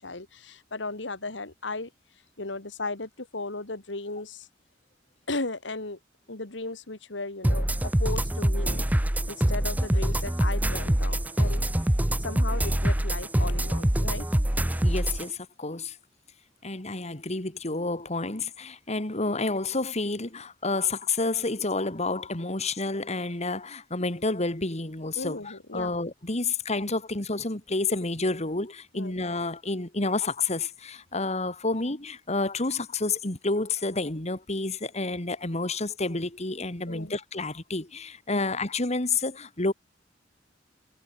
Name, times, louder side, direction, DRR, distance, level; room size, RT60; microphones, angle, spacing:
voice 1, 0.0-1.9 2.4-4.5 5.3-6.0 6.3-8.8 9.3-11.7 12.2-14.3 25.2-25.9 28.9-29.1 36.9-37.1 38.3-38.4, left 2 dB, 75° left, 2.5 m, -36 dB
sound 1, 7.4-15.2, right 1 dB, 10° right, 0.6 m, -25 dB
voice 2, 14.8-16.0 16.6-39.7, left 3 dB, 35° left, 2.5 m, -29 dB
head